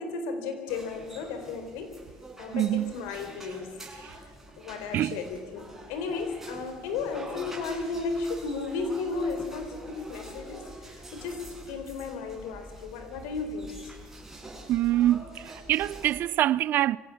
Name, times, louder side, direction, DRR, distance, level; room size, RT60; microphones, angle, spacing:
voice 1, 0.0-1.9 2.4-4.2 4.6-13.9, left 4 dB, 85° left, 4.3 m, -34 dB
sound 1, 0.7-16.2, right 1 dB, 10° right, 6.9 m, -46 dB
voice 2, 2.5-2.9 4.0-4.1 4.9-5.2 14.7-17.0, right 13 dB, 60° right, 0.5 m, -25 dB
24.0 x 17.0 x 7.2 m
supercardioid pair, 95°, 4 cm